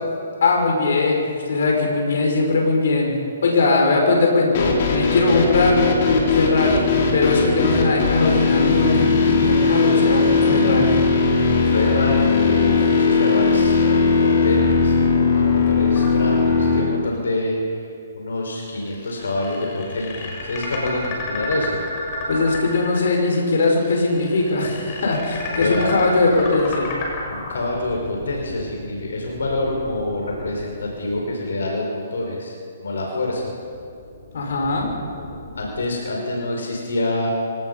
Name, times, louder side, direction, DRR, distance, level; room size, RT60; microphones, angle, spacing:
voice 1, 0.4-11.0 22.3-26.9 34.3-34.9, left 3 dB, 70° left, 0 dB, 5.9 m, -20 dB
sound 1, 4.5-16.8, left 4 dB, 45° left, 4.2 m, -18 dB
voice 2, 11.4-17.8 18.1-21.8 25.5-26.0 27.3-33.5 35.5-37.3, left 2 dB, 90° left, -1 dB, 5.2 m, -26 dB
sound 2, 16.0-17.0 17.4-17.5 18.7-31.7 33.0-35.8, left 2 dB, 30° left, 6.1 m, -33 dB
26.0 x 18.0 x 5.6 m, 2.4 s
hypercardioid pair, 155°, 0 cm